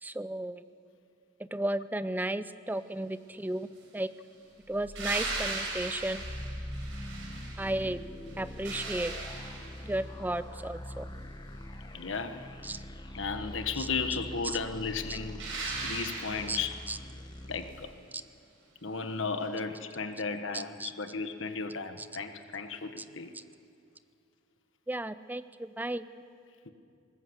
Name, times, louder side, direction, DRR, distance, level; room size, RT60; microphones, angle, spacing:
voice 1, 0.0-0.6 1.4-4.1 4.7-6.2 7.6-8.0 8.4-9.1 9.8-11.1 12.6-12.8 13.8-13.9 14.5-14.6 15.1-15.2 16.5-16.6 16.9-17.0 20.5-20.9 22.0-22.1 23.0-23.1 24.9-26.1, right 1 dB, 10° right, 13 dB, 0.5 m, -34 dB
sound 1, 4.7-17.9, left 1 dB, 20° left, 1.1 m, -43 dB
sound 2, 5.0-7.9 8.3-10.0 15.4-16.8 19.4-19.5, right 3 dB, 75° right, 5.5 m, -38 dB
voice 2, 11.9-12.4 13.1-16.7 17.4-17.9 18.8-23.3, left 4 dB, 70° left, 8 dB, 1.4 m, -35 dB
20.5 x 19.5 x 8.1 m, 2.4 s
head